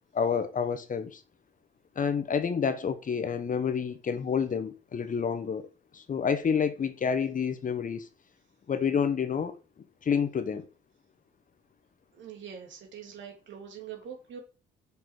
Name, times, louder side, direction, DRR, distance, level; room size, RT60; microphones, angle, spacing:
voice 1, 0.1-1.2 2.0-5.7 5.9-8.1 8.7-9.6 10.0-10.6, left 6 dB, 40° left, 1.0 m, -29 dB
voice 2, 12.1-14.4, right 8 dB, 70° right, 2.8 m, -43 dB
6.1 x 5.2 x 4.8 m
cardioid pair, 90°, 20 cm